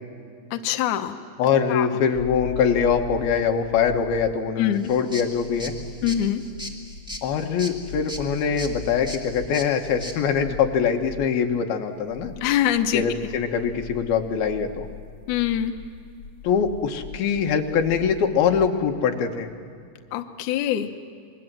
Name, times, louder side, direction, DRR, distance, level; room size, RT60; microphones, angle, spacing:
voice 1, 0.5-1.2 1.7-1.9 4.6-4.9 6.0-6.4 12.4-13.0 15.3-15.7 20.1-20.9, left 11 dB, 70° left, 6 dB, 2.2 m, -24 dB
voice 2, 1.4-5.7 7.2-12.3 12.9-14.9 16.4-19.5, left 7 dB, 90° left, 4 dB, 3.3 m, -23 dB
sound 1, 2.1-11.3 11.9-18.7, left 4 dB, 50° left, 1.6 m, -41 dB
sound 2, 4.7-10.2, equal, ahead, 1.0 m, -39 dB
27.0 x 22.0 x 7.6 m, 2.3 s
omnidirectional pair, 4.2 m